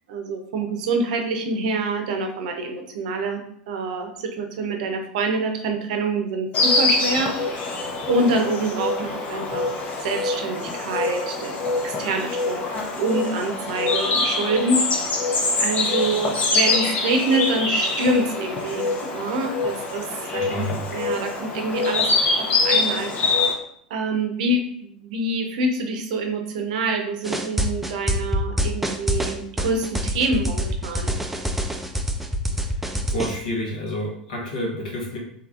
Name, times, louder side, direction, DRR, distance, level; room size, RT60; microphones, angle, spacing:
voice 1, 0.1-7.3 8.1-9.7 10.0-11.5 11.8-12.6 13.0-14.8 15.6-20.1 20.3-20.7 20.9-22.1 22.4-23.1 23.9-31.2, right 2 dB, 65° right, 4 dB, 0.6 m, -26 dB
Insect, 6.5-23.5, left 3 dB, 35° left, 0.7 m, -24 dB
voice 2, 20.3-20.8 32.6-32.7 33.1-35.2, equal, 75° left, -3 dB, 1.2 m, -29 dB
sound 1, 27.2-33.4, equal, 5° right, 0.3 m, -25 dB
3.3 x 2.9 x 2.4 m, 0.67 s
hypercardioid pair, 90°, 4 cm